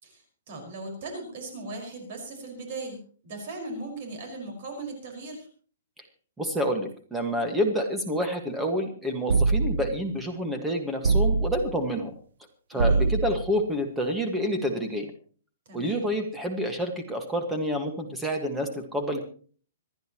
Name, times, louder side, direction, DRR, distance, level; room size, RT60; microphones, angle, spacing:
voice 1, 0.0-3.0 3.2-5.5 12.7-13.0 15.7-16.1, right 2 dB, 40° right, 3 dB, 5.2 m, -38 dB
voice 2, 6.4-12.1 12.7-15.1 15.7-19.2, equal, 5° right, 4 dB, 1.7 m, -28 dB
sound 1, 9.3-10.0 11.0-11.8 12.8-13.5, right 4 dB, 70° right, 0.7 m, -23 dB
26.0 x 10.5 x 3.0 m, 0.42 s
hypercardioid pair, 175°, 0 cm